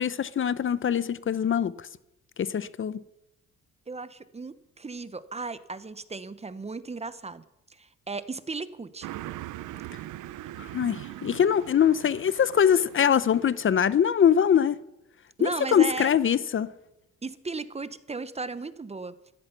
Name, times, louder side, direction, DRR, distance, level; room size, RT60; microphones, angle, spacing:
voice 1, 0.0-1.7 2.4-3.0 10.7-14.7 15.4-16.7, left 8 dB, 45° left, 0.7 m, -23 dB
voice 2, 3.9-7.4 7.7-9.1 15.4-16.1 17.2-19.1, right 4 dB, 20° right, 0.9 m, -36 dB
Car passing by, 9.0-14.0, right 14 dB, 85° right, 0.8 m, -41 dB
15.5 x 14.5 x 5.8 m
cardioid pair, 90°, 30 cm